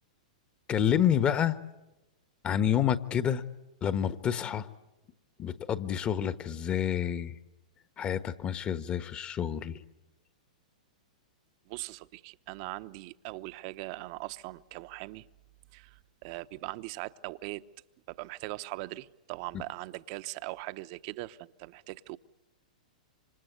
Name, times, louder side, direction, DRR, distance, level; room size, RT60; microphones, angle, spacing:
voice 1, 0.7-1.6 2.4-3.4 3.8-4.7 5.4-7.3 8.0-9.8 19.5-19.6, left 9 dB, 25° left, 1.2 m, -28 dB
voice 2, 11.7-15.3 15.7-17.6 18.1-22.2, right 20 dB, 50° right, 0.9 m, -40 dB
27.0 x 25.5 x 8.1 m
hypercardioid pair, 120°, 4 cm